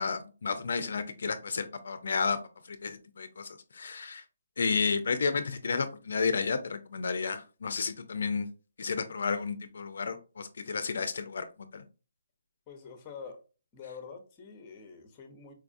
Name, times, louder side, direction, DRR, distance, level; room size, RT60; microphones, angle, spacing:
voice 1, 0.0-2.4 2.7-4.2 4.6-8.5 8.8-11.4 11.7-11.8, left 5 dB, 65° left, 10 dB, 0.4 m, -32 dB
voice 2, 12.7-13.4 13.7-15.5, left 5 dB, 20° left, 6 dB, 0.7 m, -46 dB
4.5 x 2.3 x 2.5 m, 0.33 s
hypercardioid pair, 165°, 0 cm